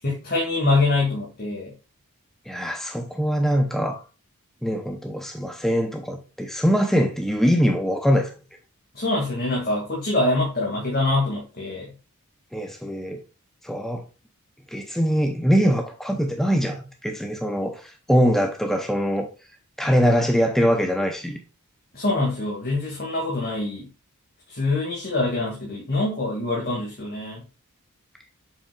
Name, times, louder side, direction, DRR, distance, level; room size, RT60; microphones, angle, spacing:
voice 1, 0.0-1.7 8.9-11.9 21.9-23.9 24.5-27.4, left 2 dB, 45° left, 2.0 m, -24 dB
voice 2, 2.5-4.0 4.6-8.3 12.5-13.2 13.6-14.0 14.7-19.3 19.8-21.4, equal, ahead, 0.7 m, -22 dB
7.2 x 5.6 x 2.4 m
head